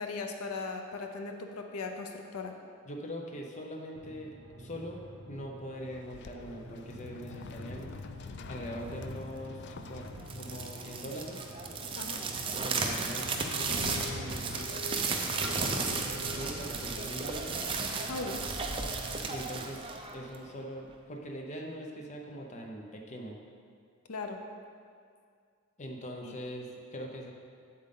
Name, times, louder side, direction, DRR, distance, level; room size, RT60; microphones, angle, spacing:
voice 1, 0.0-2.5 11.9-12.2 18.1-18.4 24.1-24.4 26.2-26.3, left 3 dB, 90° left, 4 dB, 0.6 m, -38 dB
voice 2, 2.9-4.3 4.6-5.0 5.3-7.9 8.5-10.0 10.4-11.4 12.6-13.5 14.1-15.7 16.3-17.6 19.3-23.4 25.8-27.3, equal, 35° left, 1 dB, 0.7 m, -42 dB
sound 1, 3.9-19.4, right 1 dB, 80° right, 0.7 m, -47 dB
sound 2, 5.8-17.7, left 4 dB, 50° left, 0.3 m, -46 dB
sound 3, 10.1-20.5, right 4 dB, 25° right, 0.5 m, -34 dB
7.8 x 7.5 x 3.8 m, 2.2 s
head